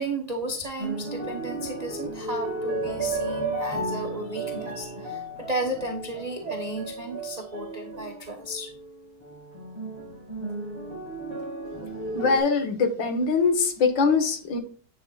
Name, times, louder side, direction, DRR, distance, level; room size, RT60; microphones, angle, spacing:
voice 1, 0.0-8.7, right 1 dB, 30° right, 2 dB, 0.7 m, -33 dB
sound 1, 0.8-12.4, right 2 dB, 15° right, 1.9 m, -34 dB
voice 2, 12.1-14.6, left 4 dB, 90° left, 6 dB, 2.1 m, -22 dB
10.0 x 5.8 x 2.4 m, 0.43 s
omnidirectional pair, 2.0 m